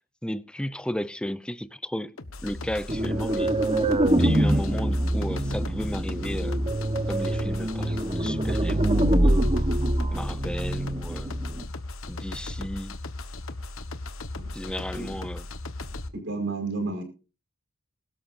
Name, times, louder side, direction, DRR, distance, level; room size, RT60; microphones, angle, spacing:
voice 1, 0.2-2.1 2.4-3.6 4.2-6.6 7.1-9.4 10.1-11.3 12.1-12.9 14.5-15.4, equal, 5° left, 0.6 m, -33 dB
sound 1, 2.2-16.1, left 2 dB, 70° left, 1.3 m, -37 dB
sound 2, 2.9-11.6, right 1 dB, 30° right, 1.2 m, -25 dB
voice 2, 16.1-17.0, right 3 dB, 60° right, 5.3 m, -31 dB
22.0 x 13.0 x 2.7 m
head